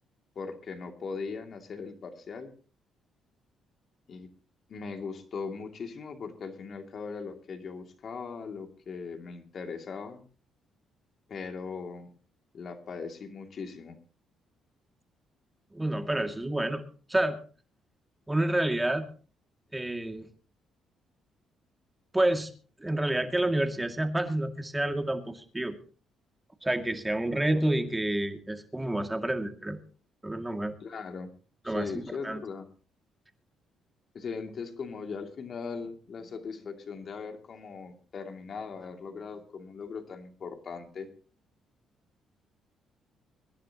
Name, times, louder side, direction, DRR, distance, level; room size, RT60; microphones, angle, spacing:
voice 1, 0.4-2.5 4.1-4.3 4.7-10.2 11.3-12.1 12.5-14.0 27.3-27.7 30.8-31.3 31.6-32.7 34.1-41.1, left 5 dB, 55° left, 5 dB, 2.5 m, -39 dB
voice 2, 15.7-16.8 17.1-17.4 18.3-19.1 19.7-20.3 22.1-22.5 22.8-25.8 26.6-29.8 30.2-30.8 31.7-32.4, right 1 dB, 15° right, 6 dB, 2.2 m, -29 dB
24.0 x 10.5 x 2.9 m, 0.39 s
supercardioid pair, 65°, 0 cm